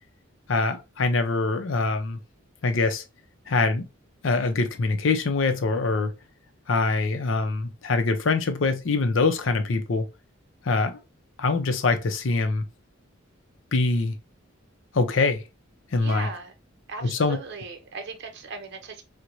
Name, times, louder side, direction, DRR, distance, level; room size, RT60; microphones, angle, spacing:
voice 1, 0.5-2.2 2.6-3.0 3.5-3.9 4.2-6.1 6.7-10.1 10.6-11.0 11.4-12.6 13.7-14.1 14.9-15.5 15.9-16.3 17.0-17.4, left 3 dB, 65° left, 0.6 m, -24 dB
voice 2, 16.0-16.5 16.9-19.0, right 4 dB, 55° right, 0.6 m, -37 dB
4.5 x 2.1 x 2.5 m
head